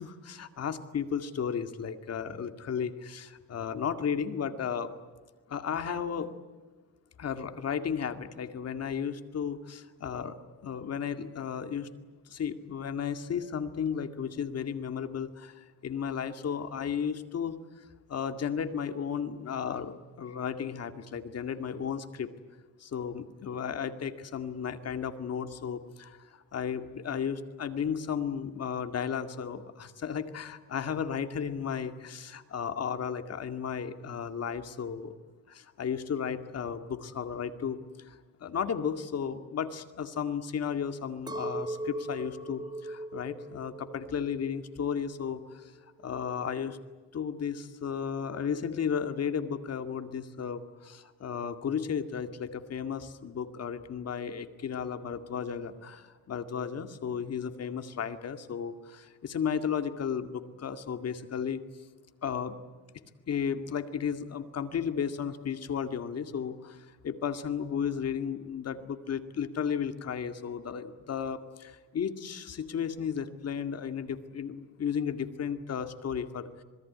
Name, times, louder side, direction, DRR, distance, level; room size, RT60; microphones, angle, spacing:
voice 1, 0.0-4.9 5.5-6.4 7.2-10.4 10.6-11.9 12.3-17.6 18.1-22.3 22.8-35.2 35.5-45.6 46.0-46.8 47.1-61.6 62.2-62.6 63.3-76.5, left 7 dB, 50° left, 8 dB, 2.3 m, -34 dB
Chink clink, 41.3-45.6 46.0-46.6, right 1 dB, 15° right, 1.7 m, -40 dB
27.0 x 21.0 x 9.7 m, 1.4 s
cardioid pair, 115°, 31 cm